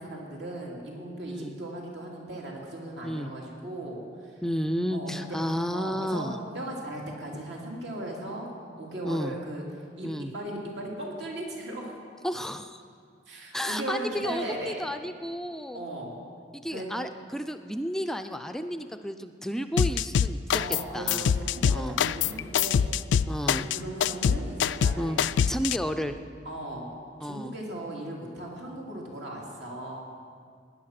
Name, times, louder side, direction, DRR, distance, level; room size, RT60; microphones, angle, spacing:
voice 1, 0.0-4.4 4.9-8.5 8.8-9.6 10.0-11.9 13.3-14.8 15.7-16.2 16.7-16.9 20.6-22.9 23.4-25.4 26.4-30.0, right 1 dB, 75° right, -2 dB, 2.7 m, -37 dB
voice 2, 4.4-6.4 9.0-9.3 10.0-10.3 12.2-12.8 13.5-15.9 16.5-20.6 20.9-21.3 21.7-22.0 23.3-23.7 25.0-25.2 25.5-26.2 27.2-27.6, equal, 5° left, 7 dB, 0.4 m, -32 dB
sound 1, 19.8-20.8 21.1-25.8, left 7 dB, 80° left, 0.3 m, -24 dB
17.5 x 10.5 x 5.9 m, 2.2 s
head